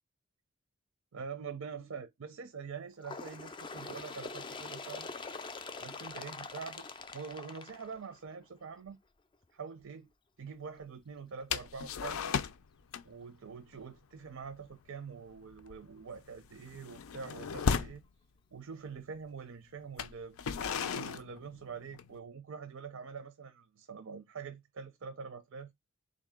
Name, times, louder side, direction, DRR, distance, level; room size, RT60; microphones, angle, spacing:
voice 1, 1.1-5.1 5.8-6.9 7.1-9.0 9.5-10.1 10.4-12.4 13.0-18.0 18.5-20.4 20.8-25.7, right 5 dB, 85° right, 0.6 m, -45 dB
Bird, 3.0-8.4 9.3-9.4 9.8-9.9 10.8-10.9 11.8-11.9 12.8-12.9, left 4 dB, 25° left, 0.3 m, -44 dB
sound 1, 11.5-12.7 12.9-13.2 13.5-13.8 14.2-14.4 14.7-15.0 15.4-18.0 18.9-19.0 19.8-22.2, left 6 dB, 85° left, 0.4 m, -36 dB
3.6 x 2.7 x 3.5 m
head